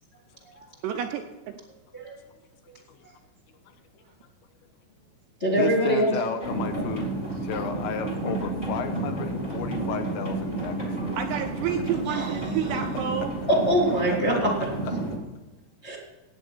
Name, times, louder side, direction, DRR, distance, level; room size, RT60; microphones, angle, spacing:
voice 1, 0.8-1.5 11.2-13.4, right 8 dB, 80° right, 5 dB, 2.5 m, -30 dB
voice 2, 3.7-4.0 5.6-11.2 13.1-13.3 14.3-14.4, left 7 dB, 75° left, 6 dB, 3.0 m, -34 dB
voice 3, 5.4-6.1 6.8-6.9 12.1-12.3 13.5-14.5 15.8-16.0, right 1 dB, 55° left, -2 dB, 0.7 m, -23 dB
sound 1, 6.4-15.2, right 2 dB, 25° left, 0.9 m, -31 dB
17.5 x 8.9 x 4.4 m, 1.2 s
omnidirectional pair, 5.6 m